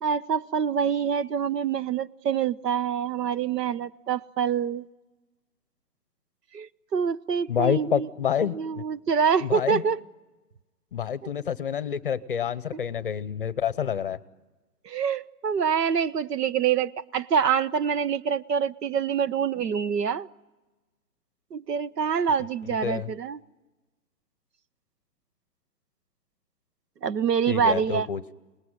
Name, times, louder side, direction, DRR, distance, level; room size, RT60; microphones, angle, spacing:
voice 1, 0.0-4.8 6.5-8.1 8.5-10.0 14.8-20.3 21.5-23.4 27.0-28.1, right 7 dB, 80° right, 14 dB, 1.1 m, -26 dB
voice 2, 7.5-8.8 9.4-9.8 10.9-14.2 22.6-23.1 27.5-28.2, left 8 dB, 35° left, 16 dB, 0.8 m, -28 dB
27.5 x 19.5 x 9.8 m, 1.2 s
hypercardioid pair, 170°, 47 cm